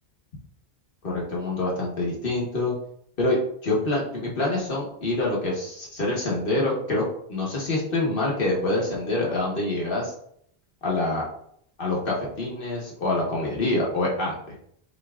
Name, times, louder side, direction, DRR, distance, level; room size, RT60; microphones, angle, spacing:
voice 1, 1.0-2.7 3.2-7.0 7.3-10.1 10.8-11.2 11.8-14.4, left 2 dB, 60° left, -4 dB, 1.3 m, -26 dB
6.0 x 3.0 x 2.4 m, 0.68 s
omnidirectional pair, 1.1 m